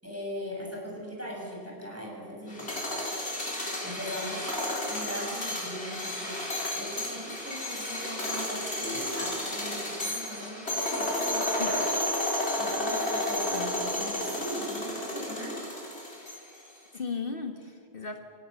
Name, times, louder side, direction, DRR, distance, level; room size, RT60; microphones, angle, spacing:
voice 1, 0.0-2.7 3.8-4.5 4.9-6.4 6.8-11.2 12.2-15.6, equal, 15° right, -3 dB, 7.8 m, -39 dB
sound 1, 2.5-16.6, left 1 dB, 90° left, 4.9 m, -32 dB
voice 2, 11.3-11.8 16.9-18.2, left 5 dB, 60° left, 4 dB, 1.8 m, -36 dB
27.0 x 25.5 x 7.2 m, 2.2 s
omnidirectional pair, 1.1 m